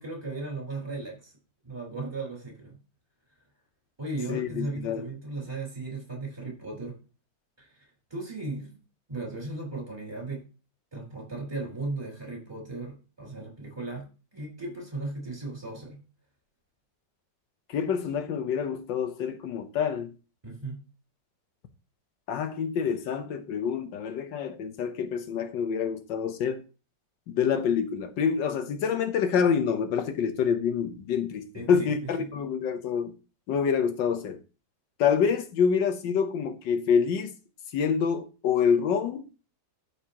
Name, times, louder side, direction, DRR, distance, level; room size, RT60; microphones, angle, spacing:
voice 1, 0.0-1.3 1.6-2.8 4.0-7.0 7.6-8.7 9.1-10.4 10.9-14.1 14.3-16.0 20.4-20.8 31.5-32.3, right 2 dB, 15° right, 4.6 m, -36 dB
voice 2, 4.3-5.1 17.7-20.1 22.3-26.6 27.3-33.1 33.5-34.4 35.0-37.3 37.7-39.3, left 7 dB, 85° left, 1.6 m, -27 dB
13.5 x 5.1 x 2.9 m
omnidirectional pair, 1.9 m